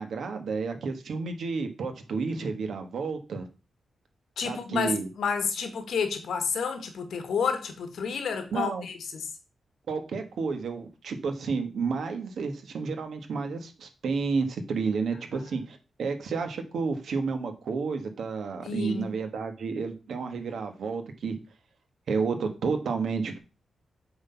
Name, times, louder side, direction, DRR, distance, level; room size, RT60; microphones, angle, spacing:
voice 1, 0.0-3.5 4.4-5.1 8.5-8.8 9.9-21.4 22.1-23.4, right 4 dB, 70° right, 1.3 m, -31 dB
voice 2, 4.4-9.3 18.6-19.1, left 6 dB, 75° left, 1.6 m, -30 dB
7.8 x 4.0 x 5.6 m
wide cardioid pair, 120°, 0 cm